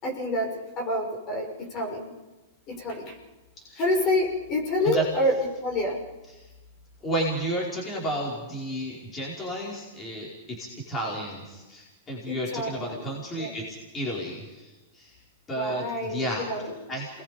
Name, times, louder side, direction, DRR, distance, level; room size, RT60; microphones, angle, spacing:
voice 1, 0.0-2.1 2.7-3.1 3.8-5.3 5.6-6.0 12.3-13.0 13.4-13.5 15.6-16.7, left 1 dB, 35° left, 1 dB, 6.0 m, -28 dB
voice 2, 7.0-15.2 15.5-16.4 16.9-17.2, right 1 dB, 20° left, -4 dB, 5.2 m, -32 dB
28.0 x 20.5 x 5.3 m, 1.1 s
hypercardioid pair, 135°, 0 cm